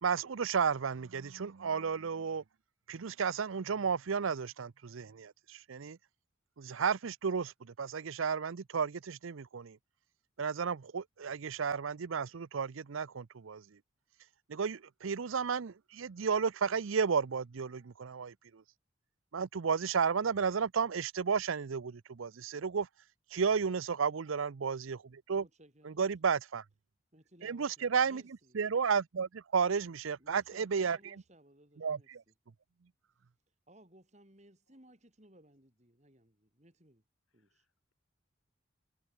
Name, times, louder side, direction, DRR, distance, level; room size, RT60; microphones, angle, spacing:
voice 1, 0.0-2.4 2.9-6.0 6.6-9.8 10.4-13.6 14.5-18.6 19.3-22.9 23.3-25.5 25.8-26.6 27.4-28.2 28.5-31.0 31.8-32.2, right 6 dB, 75° right, 0.6 m, -33 dB
voice 2, 25.4-26.3 27.1-28.6 30.2-32.1 33.7-37.0 37.3-37.7, right 1 dB, 35° right, 4.4 m, -61 dB
voice 3, 37.3-37.9, left 4 dB, 80° left, 4.4 m, -82 dB
head